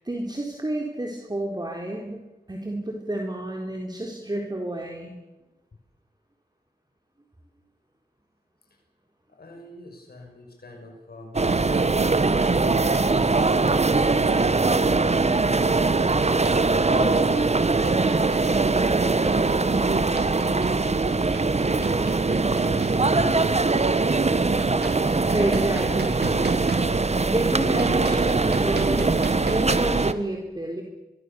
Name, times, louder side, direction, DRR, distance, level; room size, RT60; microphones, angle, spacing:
voice 1, 0.0-2.2 2.5-5.1 25.3-26.4 27.2-30.8, right 1 dB, 25° right, 1 dB, 4.0 m, -30 dB
voice 2, 9.3-15.1 16.9-17.5 17.8-18.3 18.7-22.1, left 2 dB, 70° left, 1 dB, 6.1 m, -41 dB
sound 1, 11.3-30.1, right 3 dB, 40° right, 1.4 m, -22 dB
sound 2, 11.4-29.8, right 4 dB, 80° right, 2.0 m, -36 dB
24.5 x 24.0 x 7.0 m, 1.0 s
wide cardioid pair, 70°, 17 cm